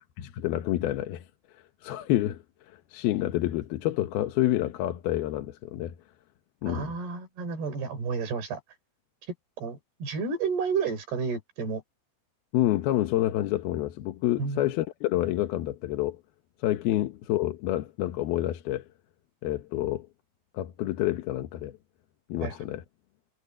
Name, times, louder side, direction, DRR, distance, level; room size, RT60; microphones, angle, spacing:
voice 1, 0.2-1.2 1.8-2.4 2.9-5.9 6.6-6.9 12.5-16.2 16.6-18.9 19.4-20.1 20.5-21.7 22.3-22.8, left 14 dB, 75° left, 3.0 m, -28 dB
voice 2, 6.7-8.6 9.6-11.8 14.4-14.6 22.4-22.6, right 5 dB, 85° right, 7.0 m, -31 dB
omnidirectional pair, 4.5 m